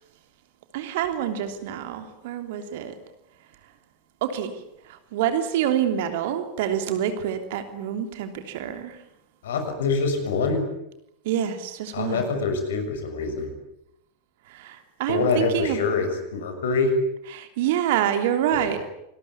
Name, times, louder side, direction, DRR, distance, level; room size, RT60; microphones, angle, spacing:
voice 1, 0.7-2.9 4.2-4.5 5.1-9.0 11.2-12.3 14.5-15.8 17.3-18.8, right 10 dB, 50° right, 7 dB, 3.2 m, -26 dB
voice 2, 9.4-10.6 11.9-13.5 15.1-16.9 18.5-18.7, left 4 dB, 60° left, 6 dB, 6.5 m, -25 dB
27.5 x 21.0 x 8.7 m, 0.82 s
figure-of-eight pair, 90°, 0 cm